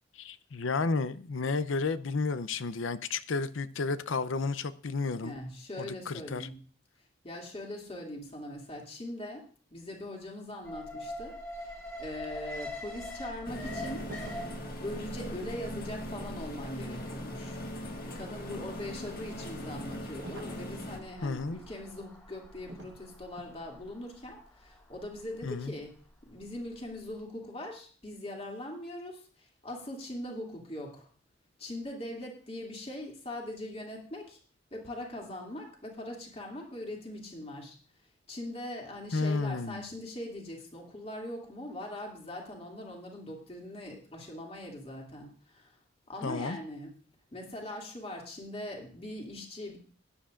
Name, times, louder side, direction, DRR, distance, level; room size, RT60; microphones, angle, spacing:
voice 1, 0.2-5.3 5.8-6.5 21.2-21.6 25.4-25.7 39.1-39.8 46.2-46.6, left 4 dB, 80° left, 0.6 m, -32 dB
voice 2, 5.2-6.5 7.2-9.4 9.7-11.7 12.0-14.1 14.8-17.6 18.0-26.0 26.2-31.1 31.6-34.4 34.7-37.8 38.3-45.8 46.1-46.9 47.3-49.8, left 1 dB, 30° left, 2.5 m, -41 dB
Alarm, 10.6-26.8 27.1-27.2, left 1 dB, 15° left, 2.7 m, -45 dB
sound 1, 13.4-21.0, equal, 50° left, 1.6 m, -40 dB
sound 2, 14.1-14.7 20.2-20.8 22.7-23.0 23.4-23.6, right 2 dB, 70° right, 1.1 m, -46 dB
17.5 x 9.9 x 2.5 m
head